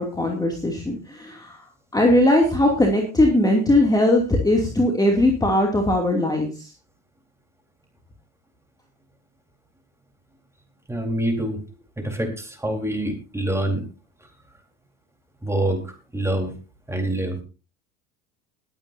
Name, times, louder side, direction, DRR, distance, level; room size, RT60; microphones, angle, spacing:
voice 1, 0.0-1.6 1.9-6.7, left 1 dB, 10° left, 1 dB, 2.7 m, -19 dB
voice 2, 10.9-11.6 12.0-13.9 15.4-16.5 16.9-17.4, right 1 dB, 5° right, 3 dB, 4.1 m, -26 dB
20.5 x 9.2 x 2.7 m, 0.32 s
hypercardioid pair, 85°, 40 cm